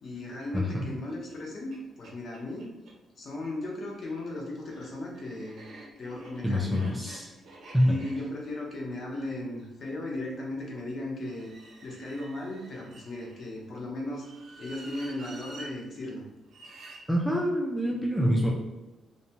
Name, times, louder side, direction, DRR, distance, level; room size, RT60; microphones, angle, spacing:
voice 1, 0.0-2.7 3.2-5.7 6.0-7.0 7.8-11.5 11.8-14.3 14.6-16.2, left 1 dB, 40° left, -2 dB, 0.6 m, -36 dB
voice 2, 0.5-0.8 6.4-7.3 7.7-8.0 17.1-18.5, equal, 5° right, -3 dB, 0.3 m, -26 dB
sound 1, 1.3-1.4 1.7-1.8 2.0-3.0 3.9-10.0 11.2-13.5 14.1-15.7 16.5-17.0, right 2 dB, 60° right, 0.6 m, -49 dB
2.6 x 2.1 x 2.8 m, 1.1 s
cardioid pair, 165°, 0 cm